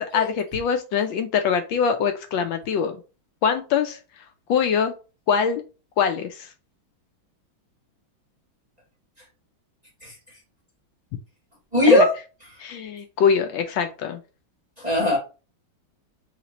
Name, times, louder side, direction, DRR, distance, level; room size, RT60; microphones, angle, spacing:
voice 1, 0.0-3.0 3.4-4.0 4.5-4.9 5.3-5.6 6.0-6.5 11.9-12.1 12.6-14.2, left 7 dB, 75° left, 1.2 m, -23 dB
voice 2, 11.7-12.1 14.8-15.2, left 1 dB, 25° right, 1.1 m, -18 dB
3.2 x 3.1 x 3.8 m
omnidirectional pair, 2.2 m